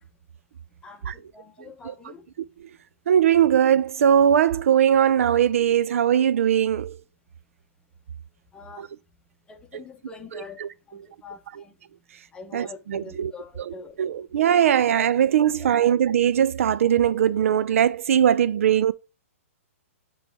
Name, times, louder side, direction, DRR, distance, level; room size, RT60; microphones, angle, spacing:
voice 1, 0.8-2.3 8.5-8.9 9.5-10.6 10.9-11.8 12.3-14.3 15.6-15.7, left 4 dB, 10° left, 0.8 m, -44 dB
voice 2, 3.1-7.0 8.8-8.9 10.3-10.7 12.5-13.3 13.6-18.9, right 9 dB, 70° right, 0.4 m, -20 dB
8.8 x 3.2 x 3.5 m
hypercardioid pair, 140°, 8 cm